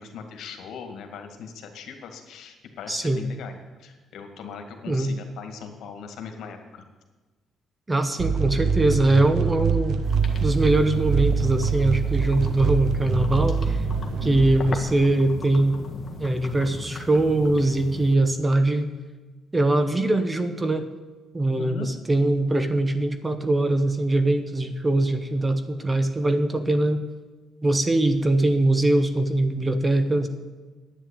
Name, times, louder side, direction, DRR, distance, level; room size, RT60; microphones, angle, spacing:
voice 1, 0.0-3.5 3.8-6.8 14.2-14.4 21.6-21.9, left 6 dB, 75° left, 5 dB, 2.0 m, -39 dB
voice 2, 2.9-3.3 4.9-5.1 7.9-10.0 10.4-13.8 14.2-15.8 16.2-18.9 19.5-20.9 21.3-27.1 27.6-30.3, right 2 dB, 15° right, 10 dB, 1.0 m, -22 dB
sound 1, 8.2-14.8, right 6 dB, 75° right, 1.1 m, -25 dB
sound 2, 10.0-18.2, left 3 dB, 30° left, 1.7 m, -37 dB
11.0 x 9.3 x 8.8 m, 1.3 s
cardioid pair, 130°, 0 cm